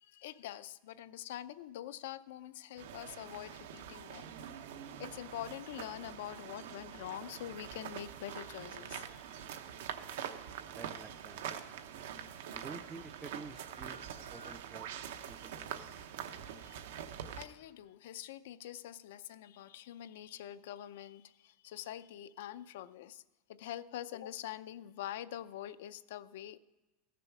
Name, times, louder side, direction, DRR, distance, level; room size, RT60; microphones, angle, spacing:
voice 1, 0.0-4.4 5.0-9.4 12.2-12.6 16.6-16.9 17.4-23.2 23.5-26.6, left 12 dB, 75° left, 13 dB, 0.5 m, -45 dB
sound 1, 2.8-17.4, right 9 dB, 85° right, 0.8 m, -45 dB
voice 2, 10.7-11.5 12.5-14.0 14.3-15.0 15.3-15.8, right 4 dB, 15° right, 12 dB, 0.4 m, -50 dB
15.0 x 6.8 x 5.9 m, 1.1 s
supercardioid pair, 165°, 0 cm